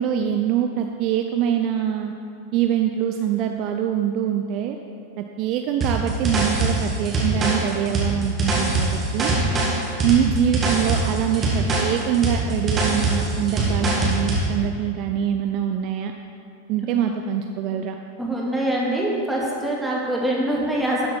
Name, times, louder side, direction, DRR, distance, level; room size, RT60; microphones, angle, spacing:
voice 1, 0.0-2.1 2.5-4.8 5.2-9.3 10.0-16.1 16.7-17.9, right 9 dB, 40° right, 4 dB, 0.5 m, -24 dB
sound 1, 5.8-14.5, right 2 dB, 25° right, 2.2 m, -22 dB
voice 2, 18.2-21.1, right 1 dB, 5° right, -4 dB, 2.2 m, -24 dB
12.5 x 7.5 x 4.4 m, 2.4 s
figure-of-eight pair, 90°, 0 cm